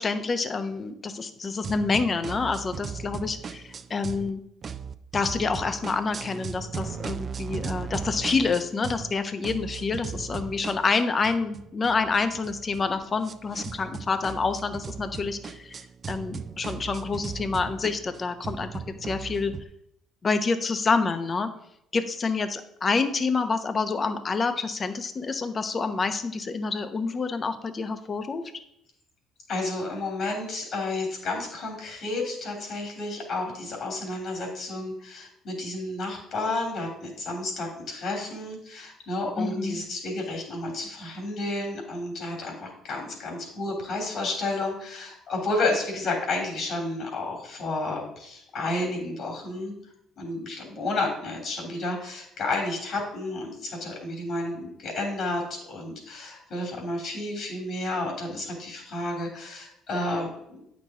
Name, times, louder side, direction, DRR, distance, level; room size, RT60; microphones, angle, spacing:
voice 1, 0.0-4.4 5.1-19.5 20.2-21.5 21.9-28.4 39.4-39.8, left 4 dB, 35° left, 9 dB, 0.8 m, -27 dB
sound 1, 1.6-4.3 4.6-9.1 9.4-19.6, right 6 dB, 45° right, 0.5 m, -37 dB
voice 2, 29.5-49.7 50.2-60.6, left 2 dB, 60° left, 1 dB, 2.9 m, -31 dB
8.8 x 6.1 x 3.7 m, 0.75 s
supercardioid pair, 75°, 0 cm